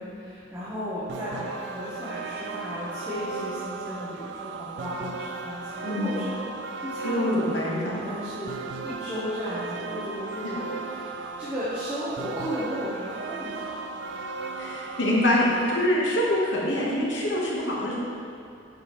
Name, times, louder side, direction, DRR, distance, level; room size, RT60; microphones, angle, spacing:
voice 1, 0.0-8.6 8.8-13.8, equal, 10° right, -13 dB, 0.9 m, -34 dB
sound 1, 1.1-15.9, right 4 dB, 70° right, 0.4 m, -36 dB
voice 2, 5.8-6.2 7.0-7.8 14.6-17.9, left 1 dB, 75° left, -4 dB, 1.2 m, -25 dB
7.0 x 4.9 x 3.1 m, 2.5 s
head